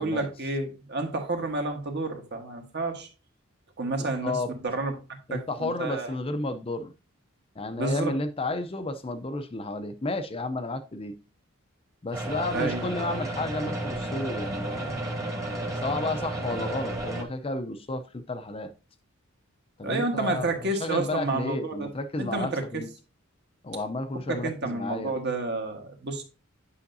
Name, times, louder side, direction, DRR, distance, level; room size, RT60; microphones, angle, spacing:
voice 1, 0.0-3.1 3.8-4.9 5.3-6.1 7.8-8.1 12.5-12.8 19.8-21.9 22.2-22.6 24.3-26.2, right 2 dB, 50° right, 1.4 m, -30 dB
voice 2, 5.3-6.9 7.6-11.2 12.0-15.0 15.5-18.7 19.8-20.5 20.8-22.9 23.6-25.1, left 2 dB, 25° left, 0.5 m, -32 dB
sound 1, 12.1-17.2, right 1 dB, 15° right, 1.2 m, -32 dB
8.4 x 5.7 x 2.7 m
head